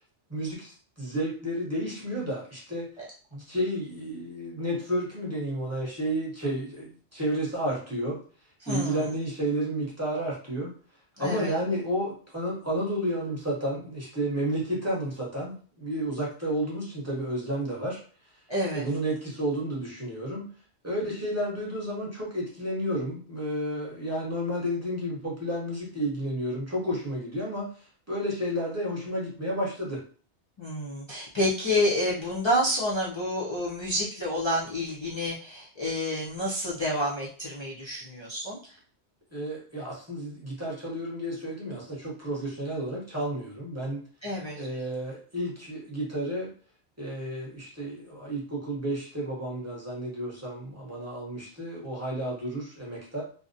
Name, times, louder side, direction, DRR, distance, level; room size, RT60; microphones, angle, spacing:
voice 1, 0.3-2.9 3.3-8.2 8.7-10.7 11.2-18.0 18.7-20.5 20.8-30.0 39.3-44.0 44.6-46.5 47.0-53.2, right 1 dB, 15° right, -5 dB, 0.7 m, -31 dB
voice 2, 8.6-9.1 11.2-11.5 18.5-18.8 30.6-38.6 44.2-44.7, left 1 dB, 45° left, -5 dB, 0.3 m, -29 dB
2.5 x 2.0 x 2.6 m, 0.42 s
omnidirectional pair, 1.2 m